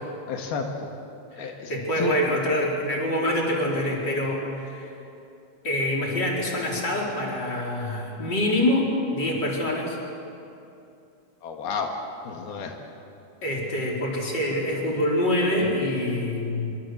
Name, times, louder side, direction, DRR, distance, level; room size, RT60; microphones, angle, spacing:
voice 1, 0.3-0.9 1.4-1.7 2.0-2.1 11.4-11.9 12.3-12.8, left 5 dB, 85° left, 2 dB, 3.6 m, -31 dB
voice 2, 1.3-4.9 5.6-10.0 13.4-16.8, left 1 dB, 30° left, -2 dB, 4.9 m, -25 dB
26.0 x 24.5 x 8.0 m, 2.7 s
omnidirectional pair, 4.3 m